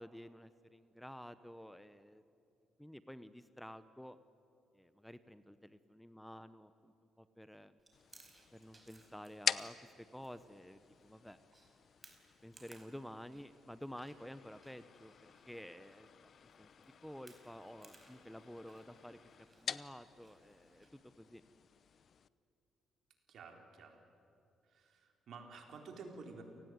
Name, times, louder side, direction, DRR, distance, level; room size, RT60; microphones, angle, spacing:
voice 1, 0.0-2.2 2.8-4.2 4.7-7.7 8.5-11.4 12.4-15.1 15.5-16.3 16.6-19.2 19.6-21.4, equal, 5° left, 13 dB, 0.9 m, -51 dB
Chewing mastication, 7.8-20.9, right 2 dB, 25° right, 4.7 m, -66 dB
sound 1, 7.9-22.3, left 7 dB, 55° left, 0.8 m, -47 dB
voice 2, 23.3-24.0 24.6-26.4, right 4 dB, 65° right, 3 dB, 4.1 m, -52 dB
29.0 x 18.5 x 9.5 m, 2.6 s
cardioid pair, 90°, 0 cm